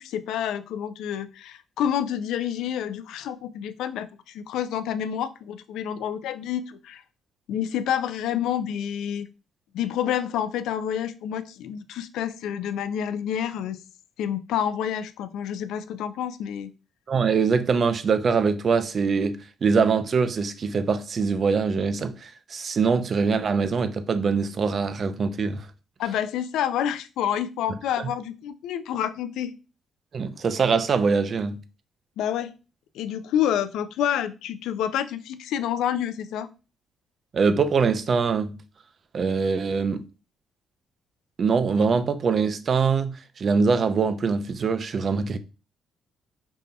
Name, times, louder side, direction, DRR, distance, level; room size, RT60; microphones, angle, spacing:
voice 1, 0.0-7.0 7.5-9.3 9.7-13.8 14.2-16.7 26.0-29.5 32.2-32.5 32.9-36.5, left 9 dB, 85° left, 0.3 m, -28 dB
voice 2, 17.1-25.6 30.1-31.6 37.3-38.5 39.1-40.0 41.4-45.4, right 5 dB, 50° right, 0.4 m, -23 dB
5.3 x 2.7 x 2.2 m
cardioid pair, 90°, 0 cm